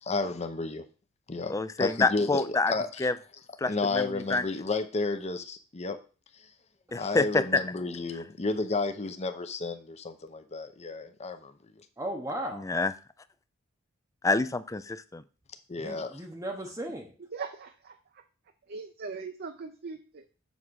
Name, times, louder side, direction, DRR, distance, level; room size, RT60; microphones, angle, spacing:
voice 1, 0.0-0.8 1.3-3.1 3.7-6.0 6.9-11.5 15.7-16.1, left 3 dB, 35° left, 8 dB, 0.8 m, -32 dB
voice 2, 1.5-2.7 3.0-3.1 3.6-4.4 6.9-7.6 12.6-12.9 14.2-15.2, left 3 dB, 15° left, 14 dB, 0.4 m, -27 dB
voice 3, 12.0-12.8 15.8-17.2, right 1 dB, 15° right, 1 dB, 0.8 m, -36 dB
voice 4, 17.3-17.9 18.7-20.2, right 5 dB, 50° right, 6 dB, 0.6 m, -39 dB
7.2 x 3.6 x 6.3 m, 0.35 s
head